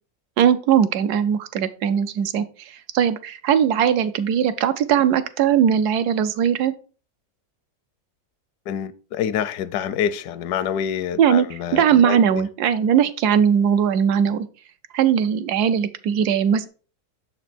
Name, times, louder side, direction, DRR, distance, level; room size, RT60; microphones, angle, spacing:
voice 1, 0.4-6.7 11.2-14.5 14.9-16.7, right 8 dB, 80° right, 1.1 m, -19 dB
voice 2, 8.7-12.4, left 9 dB, 80° left, 1.1 m, -27 dB
6.7 x 4.0 x 4.3 m
omnidirectional pair, 1.7 m